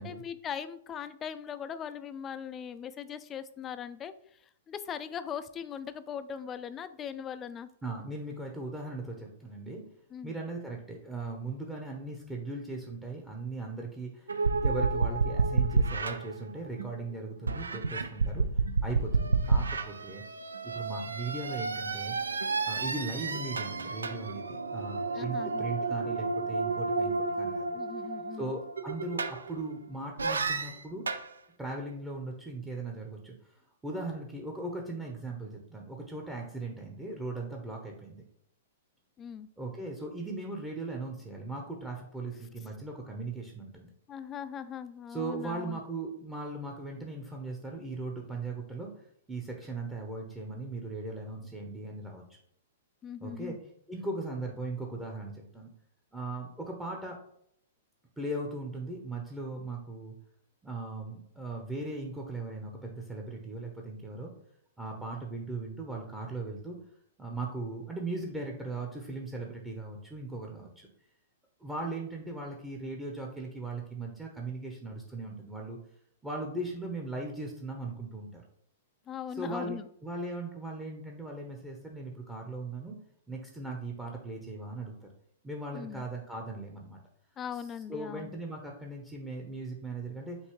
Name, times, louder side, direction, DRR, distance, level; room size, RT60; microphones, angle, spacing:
voice 1, 0.0-4.1 4.7-7.7 10.1-10.3 25.1-25.7 27.7-28.5 39.2-39.5 44.1-45.8 53.0-53.6 79.1-79.9 85.7-86.0 87.4-88.3, left 8 dB, 25° left, 13 dB, 0.3 m, -40 dB
voice 2, 7.8-9.8 10.2-14.3 14.6-20.2 20.6-22.2 22.7-27.8 28.3-31.1 31.6-38.2 39.6-43.9 45.1-52.2 53.2-53.6 53.9-55.7 56.1-57.2 58.2-60.1 60.6-64.3 64.8-66.8 67.2-70.9 71.6-75.8 76.2-78.4 79.3-83.0 83.3-85.1 85.4-87.0 87.5-87.6 87.9-90.4, right 2 dB, 10° right, 0 dB, 0.8 m, -38 dB
sound 1, 14.3-17.0 17.5-29.7 30.2-31.3, right 4 dB, 80° right, 0.4 m, -31 dB
5.4 x 2.7 x 3.1 m, 0.69 s
figure-of-eight pair, 110°, 0 cm